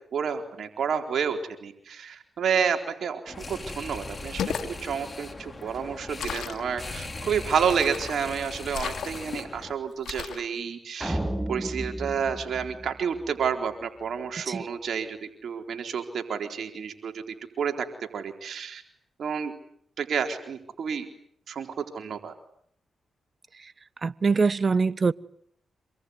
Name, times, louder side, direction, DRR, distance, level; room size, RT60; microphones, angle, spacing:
voice 1, 0.1-11.2 11.5-15.2 15.4-17.2 17.6-17.9 18.1-18.8 19.2-19.5 20.0-21.1 21.5-22.3, right 7 dB, 70° right, 4.1 m, -30 dB
sound 1, 3.3-9.7, left 3 dB, 35° left, 4.4 m, -39 dB
sound 2, 4.2-4.7 6.2-6.7 7.7-8.2 8.7-9.4 10.1-10.5, left 8 dB, 80° left, 2.8 m, -34 dB
sound 3, 11.0-13.5, right 1 dB, 10° right, 8.0 m, -33 dB
voice 2, 24.0-25.1, right 4 dB, 45° right, 1.2 m, -24 dB
27.0 x 21.5 x 9.7 m
cardioid pair, 55°, 0 cm